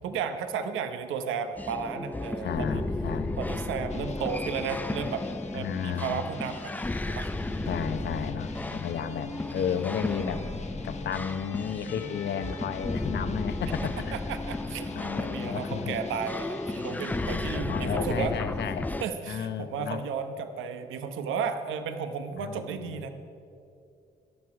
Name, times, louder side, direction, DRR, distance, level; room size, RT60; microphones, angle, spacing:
voice 1, 0.0-2.8 3.4-5.3 5.5-6.7 7.1-7.3 14.1-18.3 19.0-23.1, right 6 dB, 85° right, 8 dB, 1.0 m, -33 dB
sound 1, 1.6-19.1, left 2 dB, 10° left, 0.4 m, -34 dB
voice 2, 2.4-3.4 5.5-6.2 7.7-10.4 10.8-14.1 14.9-16.0 17.2-18.9 19.3-20.0 22.4-23.0, left 8 dB, 60° left, 10 dB, 0.9 m, -33 dB
sound 2, 3.9-17.6, left 5 dB, 35° left, 0.9 m, -45 dB
Percussion / Church bell, 11.9-15.8, left 7 dB, 80° left, 1.6 m, -52 dB
14.5 x 11.0 x 4.8 m, 2.6 s
cardioid pair, 90°, 20 cm